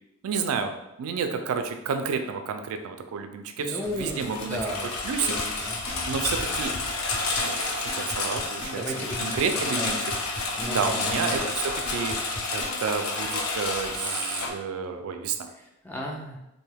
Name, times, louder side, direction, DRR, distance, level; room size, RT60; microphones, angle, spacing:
voice 1, 0.2-4.6 5.0-5.3 6.1-6.7 7.4-10.0 10.7-12.2 12.5-15.5, right 6 dB, 90° right, 7 dB, 0.3 m, -30 dB
voice 2, 3.6-4.9 5.2-5.8 8.6-9.4 9.8-9.9 10.6-11.5 15.5-16.5, left 1 dB, 10° left, -1 dB, 0.3 m, -35 dB
Engine, 3.8-14.5, left 3 dB, 85° left, 0.5 m, -30 dB
sound 1, 5.4-12.9 13.3-13.4, left 1 dB, 35° left, 0.9 m, -36 dB
2.6 x 2.2 x 3.3 m, 0.90 s
head